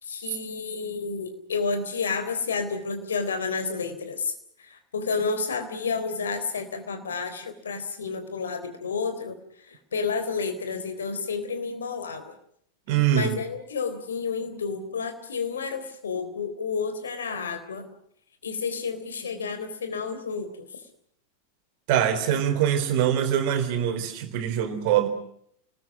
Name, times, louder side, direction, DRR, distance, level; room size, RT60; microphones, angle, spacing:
voice 1, 0.0-4.3 4.6-12.3 13.1-17.9 18.4-20.5, left 5 dB, 65° left, 8 dB, 3.8 m, -30 dB
voice 2, 12.9-13.4 21.9-25.1, right 10 dB, 45° right, 8 dB, 3.8 m, -23 dB
30.0 x 20.5 x 6.1 m, 0.68 s
figure-of-eight pair, 90°, 0 cm